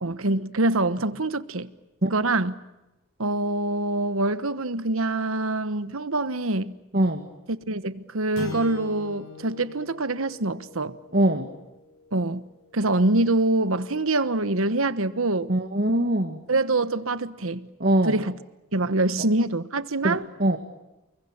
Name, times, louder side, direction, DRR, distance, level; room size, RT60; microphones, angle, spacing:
voice 1, 0.0-1.7 2.1-2.5 3.2-6.7 7.7-11.0 12.1-12.4 12.7-15.5 16.5-17.7 18.0-18.3 18.7-20.3, right 2 dB, 75° right, 1.3 m, -25 dB
voice 2, 6.9-7.3 11.1-11.5 15.5-16.4 17.8-18.2 20.0-20.6, right 1 dB, 45° right, 2.0 m, -22 dB
sound 1, 8.3-12.8, left 4 dB, 75° left, 5.6 m, -41 dB
29.5 x 22.5 x 8.8 m
head